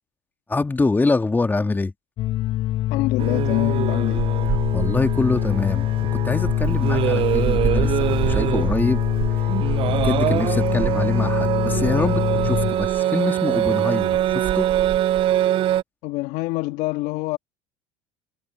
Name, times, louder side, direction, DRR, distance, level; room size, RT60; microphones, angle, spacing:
voice 1, 0.5-1.9 4.7-9.0 9.3-14.7, left 3 dB, 15° left, 2.1 m, -25 dB
sound 1, 2.2-12.7, left 14 dB, 45° left, 0.4 m, -24 dB
voice 2, 2.9-4.3 16.0-17.4, left 21 dB, 65° left, 1.7 m, -26 dB
sound 2, 3.2-15.8, right 12 dB, 45° right, 0.5 m, -23 dB
hypercardioid pair, 75°, 12 cm